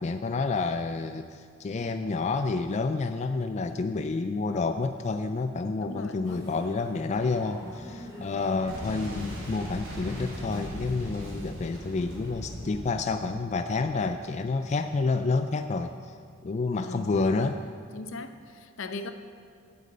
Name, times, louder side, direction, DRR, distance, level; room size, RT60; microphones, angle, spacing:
voice 1, 0.0-16.1 16.4-17.5, left 3 dB, 35° left, 8 dB, 0.3 m, -29 dB
voice 2, 5.8-6.6 16.8-17.6 17.9-19.1, left 3 dB, 70° left, 9 dB, 0.7 m, -38 dB
sound 1, 6.2-12.8, left 1 dB, 15° right, 3.1 m, -44 dB
Boom, 8.6-14.2, equal, 80° right, 3.2 m, -40 dB
8.2 x 8.0 x 8.7 m, 2.2 s
head